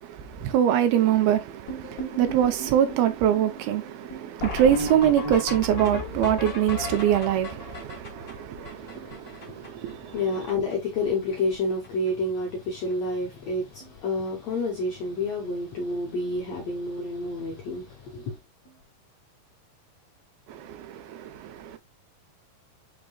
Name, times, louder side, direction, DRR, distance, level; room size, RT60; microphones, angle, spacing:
voice 1, 0.0-10.2 20.5-21.8, right 10 dB, 80° right, 2.6 m, -24 dB
sound 1, 1.7-9.9 10.2-10.3 10.5-10.7 11.0-11.5 11.8-12.1 12.9-13.0 13.4-13.5 13.8-14.0 16.2-16.3 18.6-18.7, left 1 dB, 45° left, 1.3 m, -35 dB
voice 2, 8.8-18.4, left 2 dB, 75° left, 1.6 m, -30 dB
6.2 x 3.6 x 2.3 m
omnidirectional pair, 4.4 m